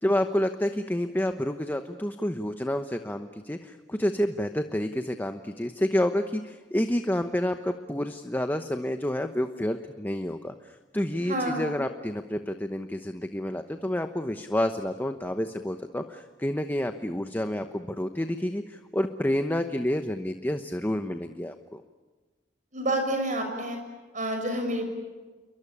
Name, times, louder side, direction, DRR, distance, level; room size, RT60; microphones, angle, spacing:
voice 1, 0.0-10.5 10.9-21.8, left 1 dB, 10° left, 7 dB, 1.0 m, -29 dB
voice 2, 11.2-11.7 22.7-23.8 24.1-24.9, right 1 dB, 45° right, 5 dB, 6.4 m, -28 dB
28.5 x 23.5 x 8.6 m, 1.3 s
head